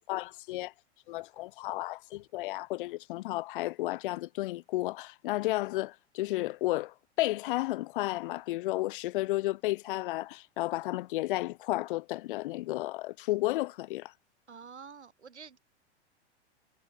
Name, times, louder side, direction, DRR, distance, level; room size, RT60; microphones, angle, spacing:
voice 1, 0.1-0.7 1.1-14.1, left 18 dB, 45° left, 1.8 m, -32 dB
voice 2, 14.5-15.6, right 6 dB, 75° right, 7.5 m, -48 dB
figure-of-eight pair, 95°, 35 cm